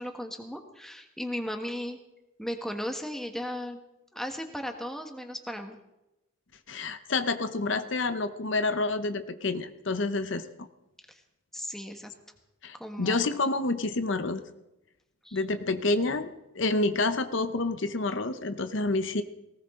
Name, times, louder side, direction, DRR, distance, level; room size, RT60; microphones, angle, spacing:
voice 1, 0.0-2.0 2.4-3.8 4.1-5.8 11.1-11.2 11.5-12.1 12.7-13.2 15.2-15.4, equal, ahead, 4 dB, 1.5 m, -36 dB
voice 2, 6.7-10.7 12.6-14.4 15.3-19.2, left 3 dB, 65° left, 10 dB, 0.8 m, -28 dB
19.0 x 18.5 x 3.8 m, 0.94 s
head